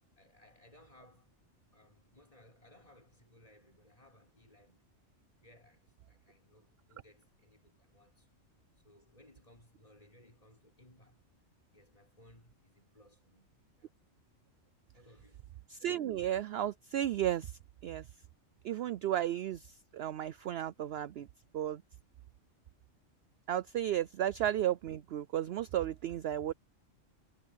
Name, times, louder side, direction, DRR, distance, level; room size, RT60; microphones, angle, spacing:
voice 1, 0.2-1.3 1.7-4.9 5.4-8.4 8.8-11.2 11.7-13.9 14.9-15.5, left 1 dB, 30° left, 6.3 m, -62 dB
voice 2, 15.7-17.5 17.8-18.0 18.6-21.3 21.5-21.8 23.5-26.5, right 11 dB, 65° right, 0.7 m, -33 dB
omnidirectional pair, 1.3 m